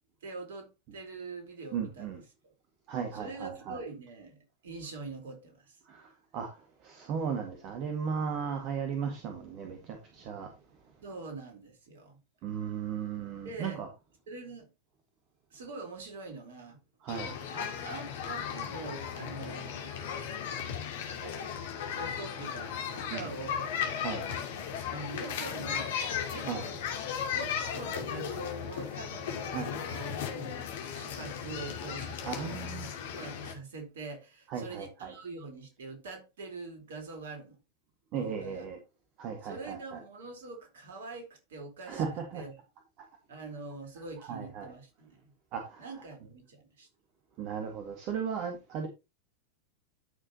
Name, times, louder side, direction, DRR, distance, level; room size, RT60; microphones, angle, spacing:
voice 1, 0.2-2.1 3.1-5.8 11.0-12.2 13.4-13.8 14.3-14.7 15.5-16.8 17.5-20.3 21.1-21.4 21.9-23.6 24.9-26.0 26.3-26.8 27.3-32.8 33.1-37.6 38.2-38.6 39.4-42.0 42.3-42.5 43.3-45.3 45.8-46.9, right 3 dB, 60° right, 4.1 m, -44 dB
voice 2, 1.7-2.2 2.9-3.8 5.9-6.1 6.3-6.5 6.8-10.5 12.4-13.9 17.0-17.3 23.1-23.3 24.0-24.2 26.4-26.7 29.5-29.7 32.3-32.9 34.5-35.1 38.1-38.8 39.2-40.0 41.9-42.4 44.2-44.7 45.5-45.9 47.4-48.9, right 7 dB, 40° right, 1.9 m, -36 dB
sound 1, 17.1-33.5, left 8 dB, 55° left, 2.4 m, -36 dB
13.0 x 6.4 x 2.9 m
figure-of-eight pair, 90°, 0 cm